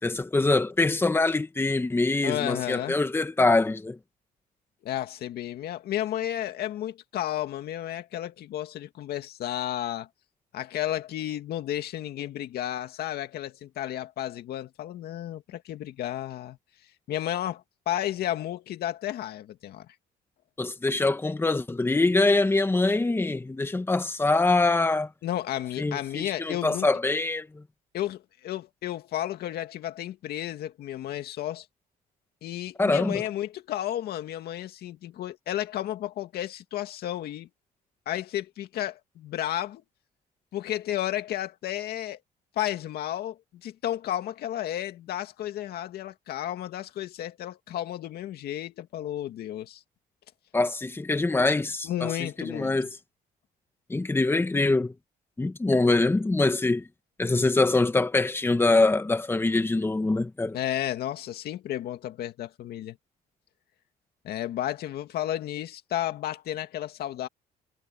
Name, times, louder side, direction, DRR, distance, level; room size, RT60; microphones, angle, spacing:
voice 1, 0.0-4.0 20.6-25.1 25.8-27.6 32.8-33.2 50.5-52.9 53.9-54.9 55.4-56.8 57.2-60.6, left 2 dB, 15° left, 1.9 m, -24 dB
voice 2, 2.2-3.0 4.8-10.1 10.5-16.6 17.1-19.9 25.2-26.9 27.9-31.7 32.4-37.5 38.1-39.8 40.5-42.2 42.6-49.8 51.8-52.8 60.5-63.0 64.2-67.3, left 12 dB, 70° left, 2.2 m, -32 dB
cardioid pair, 110°, 17 cm